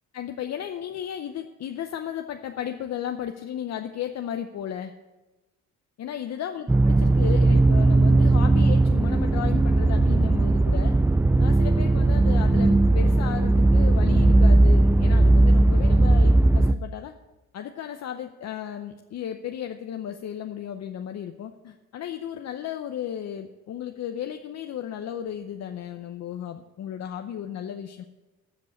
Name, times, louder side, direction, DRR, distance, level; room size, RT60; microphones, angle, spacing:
voice 1, 0.1-4.9 6.0-11.0 11.4-17.1 17.5-28.0, left 9 dB, 60° left, 6 dB, 0.7 m, -34 dB
sound 1, 6.7-16.7, right 2 dB, 10° right, 0.3 m, -18 dB
14.5 x 5.3 x 8.3 m, 1.1 s
cardioid pair, 90°, 30 cm